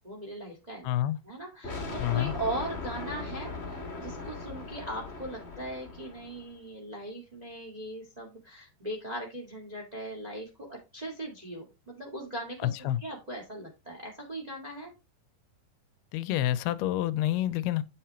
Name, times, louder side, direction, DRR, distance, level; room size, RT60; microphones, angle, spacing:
voice 1, 0.0-0.9 1.2-14.9, right 1 dB, 15° right, 1.3 m, -39 dB
voice 2, 0.8-1.2 2.0-2.3 12.6-13.0 16.1-17.8, left 13 dB, 80° left, 2.5 m, -28 dB
sound 1, 1.6-6.5, left 3 dB, 25° left, 1.3 m, -39 dB
9.7 x 5.8 x 4.4 m
omnidirectional pair, 4.6 m